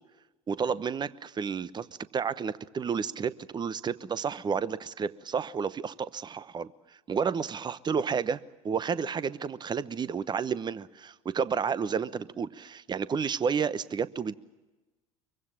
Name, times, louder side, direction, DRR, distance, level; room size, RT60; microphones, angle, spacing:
voice 1, 0.5-1.9 2.1-6.7 7.1-8.4 8.6-14.4, right 6 dB, 25° right, 0.9 m, -31 dB
24.5 x 23.5 x 7.5 m
figure-of-eight pair, 70°, 18 cm